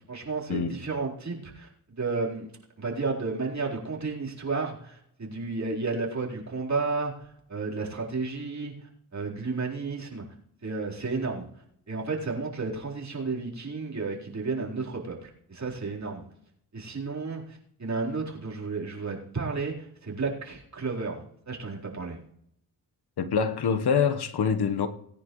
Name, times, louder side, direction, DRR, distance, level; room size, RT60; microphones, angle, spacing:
voice 1, 0.1-1.7 2.0-2.5 2.8-7.2 7.5-10.2 10.6-11.5 11.9-16.2 16.7-22.2, right 4 dB, 40° right, 4.2 m, -32 dB
voice 2, 23.2-24.9, left 6 dB, 60° left, 1.3 m, -25 dB
19.0 x 9.8 x 3.2 m
supercardioid pair, 45°, 43 cm